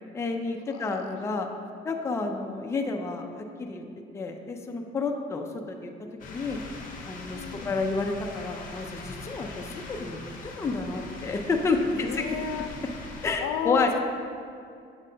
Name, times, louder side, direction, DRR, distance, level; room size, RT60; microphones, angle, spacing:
voice 1, 0.1-1.5 1.8-3.8 4.1-5.9 6.3-6.6 7.1-10.3 10.6-12.3 13.2-13.9, left 3 dB, 15° left, 3 dB, 0.3 m, -30 dB
sound 1, 6.2-13.4, left 3 dB, 45° left, 0.7 m, -42 dB
voice 2, 7.3-7.7 11.9-12.7 13.4-14.0, left 8 dB, 85° left, 7 dB, 0.5 m, -33 dB
7.3 x 5.3 x 2.7 m, 2.4 s
cardioid pair, 155°, 20 cm